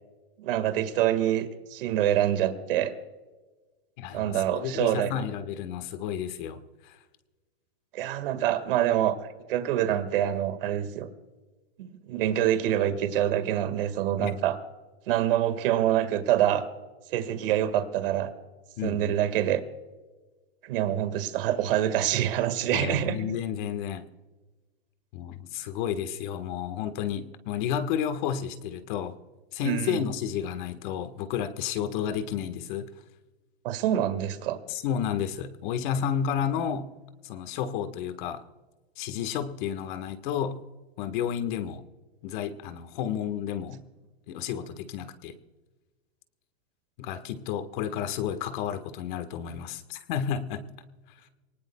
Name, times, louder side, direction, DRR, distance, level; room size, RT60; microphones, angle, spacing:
voice 1, 0.4-2.9 4.1-5.1 7.9-11.1 11.8-14.6 15.1-16.6 17.1-18.3 18.8-19.6 20.6-23.3 29.6-30.0 33.6-34.6, right 11 dB, 60° right, 10 dB, 1.9 m, -26 dB
voice 2, 4.0-7.0 14.2-14.3 18.8-19.1 22.7-24.1 25.1-29.2 29.5-32.9 34.7-36.9 37.2-38.4 39.0-40.6 41.0-41.8 42.2-43.8 44.3-45.3 47.0-50.6, left 8 dB, 50° left, 9 dB, 1.5 m, -31 dB
24.0 x 19.0 x 2.3 m, 1.3 s
supercardioid pair, 145°, 31 cm